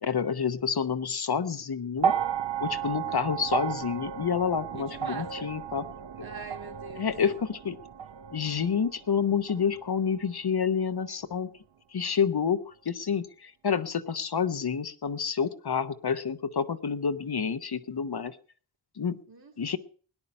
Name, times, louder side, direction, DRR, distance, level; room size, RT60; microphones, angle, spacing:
voice 1, 0.0-2.1 2.6-5.8 7.0-7.8 8.3-11.5 11.9-18.4 19.0-19.2 19.6-19.8, left 6 dB, 55° left, 10 dB, 0.9 m, -29 dB
sound 1, 2.0-10.3 11.4-11.5, right 8 dB, 70° right, 0.8 m, -34 dB
voice 2, 4.7-5.5 6.2-7.1 19.3-19.8, right 4 dB, 50° right, 2 dB, 2.6 m, -43 dB
17.5 x 10.0 x 5.3 m, 0.43 s
wide cardioid pair, 60°, 45 cm